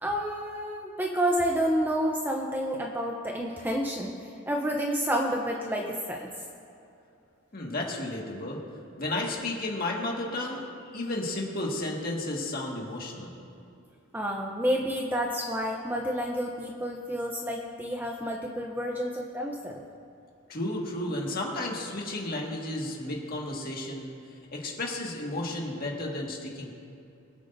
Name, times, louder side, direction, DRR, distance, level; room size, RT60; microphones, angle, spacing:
voice 1, 0.0-4.2 4.5-6.3 14.1-19.8, equal, 10° right, 0 dB, 0.7 m, -29 dB
voice 2, 7.5-8.6 9.0-10.6 10.9-13.4 20.5-24.1 24.5-26.7, left 1 dB, 40° left, -2 dB, 1.9 m, -33 dB
24.5 x 8.3 x 2.7 m, 2.7 s
head